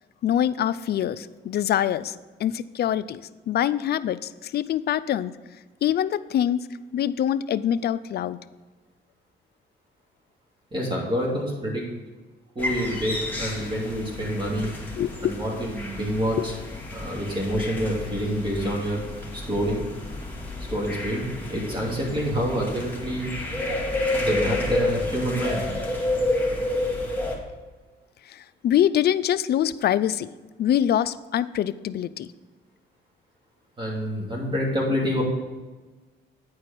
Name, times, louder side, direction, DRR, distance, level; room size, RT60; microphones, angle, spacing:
voice 1, 0.2-3.2 3.5-5.3 5.8-6.7 6.9-8.4 15.0-15.3 16.4-16.5 28.3-30.3 30.6-32.3, left 10 dB, 55° left, 15 dB, 0.4 m, -24 dB
voice 2, 10.7-11.9 12.5-14.7 15.2-16.5 16.9-19.0 19.3-19.9 20.7-21.2 21.5-23.3 24.2-25.7 33.8-35.2, equal, 25° right, -4 dB, 2.8 m, -27 dB
sound 1, 12.6-27.3, left 2 dB, 10° left, 2.1 m, -30 dB
9.1 x 4.8 x 6.0 m, 1.3 s
cardioid pair, 90°, 20 cm